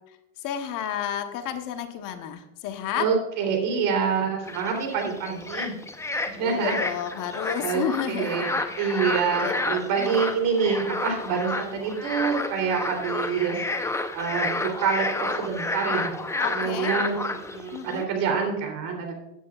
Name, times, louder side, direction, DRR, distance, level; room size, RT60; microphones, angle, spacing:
voice 1, 0.4-3.1 6.4-8.5 9.4-9.6 10.0-10.1 16.4-16.9 17.7-18.1, left 9 dB, 50° left, 7 dB, 1.2 m, -31 dB
voice 2, 3.0-5.7 6.2-6.8 7.6-16.1 16.5-17.2 17.5-19.1, right 6 dB, 55° right, 2 dB, 3.4 m, -27 dB
sound 1, 4.4-18.0, left 2 dB, 5° left, 0.7 m, -30 dB
15.0 x 9.1 x 2.4 m, 0.90 s
hypercardioid pair, 100°, 40 cm